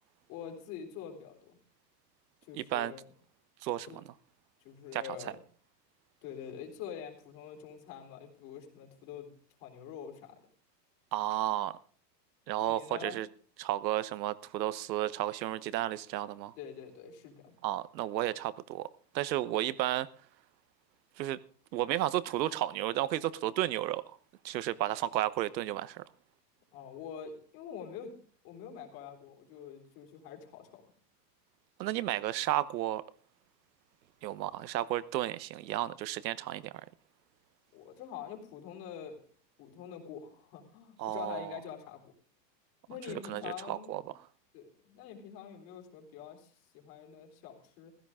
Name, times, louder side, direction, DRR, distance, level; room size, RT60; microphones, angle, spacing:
voice 1, 0.3-1.6 2.4-3.0 3.9-4.0 4.6-5.4 6.2-9.3 9.6-10.3 12.6-13.2 16.6-17.5 26.7-28.1 28.4-30.8 37.7-39.2 39.6-42.1 42.9-44.1 44.5-47.9, left 8 dB, 40° left, 3.7 m, -45 dB
voice 2, 2.5-2.9 3.6-4.0 4.9-5.0 11.1-11.8 12.5-13.3 13.6-16.5 17.6-18.9 19.1-20.1 21.2-21.4 21.7-24.0 24.4-26.0 31.8-33.0 34.2-36.7 41.0-41.6 43.1-44.0, right 14 dB, 85° right, 1.1 m, -32 dB
15.5 x 14.0 x 3.6 m
supercardioid pair, 165°, 50 cm